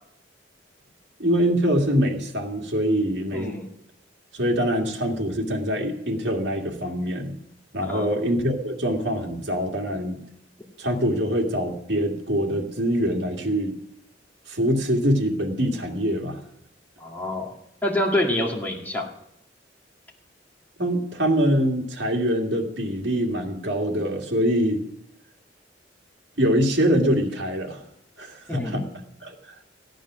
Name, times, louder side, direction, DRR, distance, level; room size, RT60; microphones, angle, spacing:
voice 1, 1.2-3.5 4.3-7.4 7.7-10.3 10.8-13.8 14.5-16.4 20.8-24.8 26.4-27.8 28.2-28.9 29.2-29.3, equal, 65° right, 1 dB, 2.1 m, -24 dB
voice 2, 3.3-3.7 7.9-8.1 17.0-17.5 17.8-19.1 28.5-28.9, left 1 dB, 10° left, -2 dB, 2.1 m, -26 dB
15.0 x 9.2 x 6.2 m, 0.75 s
head